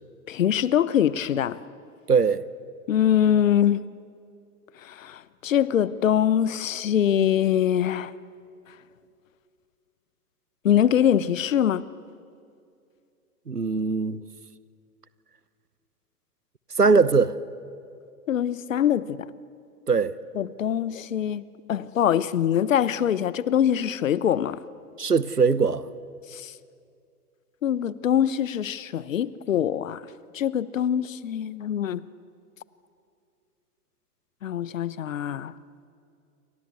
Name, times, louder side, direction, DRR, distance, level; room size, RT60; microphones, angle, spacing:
voice 1, 0.3-1.6 2.9-3.8 4.8-8.1 10.6-11.8 18.3-19.3 20.3-21.4 21.7-24.6 26.3-26.5 27.6-30.0 30.3-32.0 34.4-35.5, left 10 dB, 60° left, 1.1 m, -23 dB
voice 2, 2.1-2.4 13.5-14.2 16.8-17.3 19.9-20.1 25.0-25.8, right 5 dB, 90° right, 1.0 m, -20 dB
29.0 x 25.0 x 8.2 m
figure-of-eight pair, 105°, 45 cm